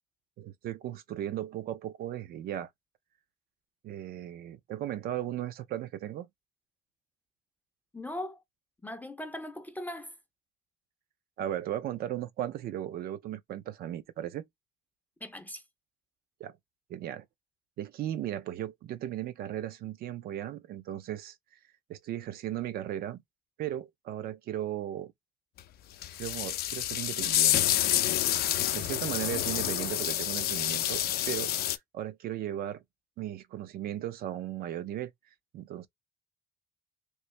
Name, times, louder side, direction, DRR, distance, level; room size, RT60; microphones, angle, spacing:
voice 1, 0.4-2.7 3.8-6.3 11.4-14.4 16.4-16.6 16.9-17.3 17.8-21.4 21.9-23.2 23.6-25.1 26.2-27.8 28.7-32.8 33.2-35.1 35.5-35.9, right 12 dB, 65° right, 0.5 m, -36 dB
voice 2, 7.9-8.4 8.8-10.1 15.2-15.6, left 1 dB, 10° left, 0.5 m, -39 dB
sound 1, 25.6-25.7 26.0-31.8, left 12 dB, 65° left, 0.4 m, -28 dB
3.1 x 2.6 x 3.1 m
cardioid pair, 110°, 17 cm